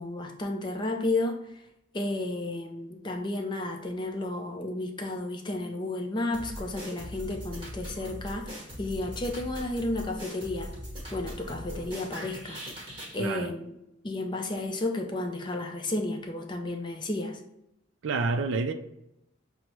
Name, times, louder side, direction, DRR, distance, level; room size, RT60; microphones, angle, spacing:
voice 1, 0.0-1.6 1.9-10.7 11.1-12.6 13.1-13.7 14.0-17.4, left 2 dB, 25° left, 0.4 m, -32 dB
sound 1, 6.3-13.2, equal, 25° right, 1.1 m, -40 dB
voice 2, 13.2-13.5 18.0-18.7, right 3 dB, 70° right, 0.4 m, -28 dB
5.8 x 2.0 x 3.0 m
head